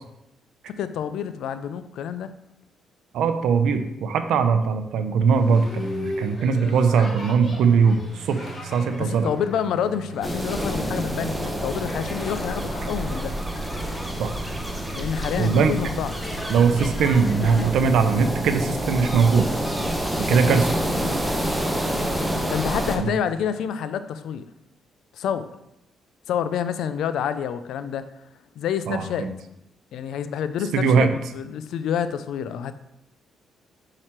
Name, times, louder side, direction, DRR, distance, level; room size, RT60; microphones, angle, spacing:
voice 1, 0.7-2.3 9.0-13.4 14.9-16.2 20.3-20.7 22.5-24.4 25.1-25.5 26.3-28.1 28.6-29.3 29.9-32.7, left 8 dB, 80° left, 12 dB, 0.4 m, -28 dB
voice 2, 3.1-9.3 14.2-14.3 15.4-15.7 16.5-19.5 20.2-20.7 23.0-23.1 28.9-29.3 30.7-31.1, right 5 dB, 80° right, 8 dB, 0.6 m, -20 dB
Boat Water vehicle, 5.3-18.4, left 1 dB, 40° left, 1.6 m, -39 dB
sound 1, 7.0-22.6, right 7 dB, 35° right, 2.7 m, -41 dB
sound 2, 10.2-23.0, equal, ahead, 0.9 m, -28 dB
5.9 x 4.9 x 4.3 m, 0.85 s
cardioid pair, 90°, 0 cm